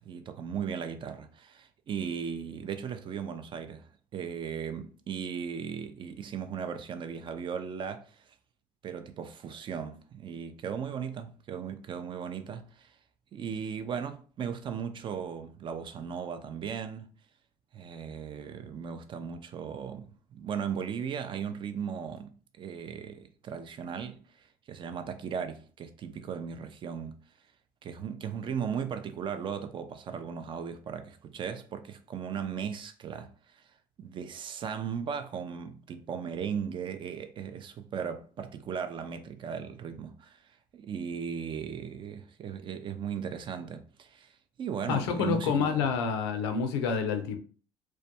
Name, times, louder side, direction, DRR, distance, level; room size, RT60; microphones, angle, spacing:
voice 1, 0.0-8.2 8.8-13.0 13.3-17.1 17.7-27.2 27.8-33.6 34.0-40.4 40.7-44.3 44.6-45.8, right 7 dB, 40° right, 0.4 m, -37 dB
voice 2, 44.9-47.4, left 6 dB, 85° left, 0.4 m, -28 dB
2.2 x 2.1 x 2.7 m
supercardioid pair, 75°, 13 cm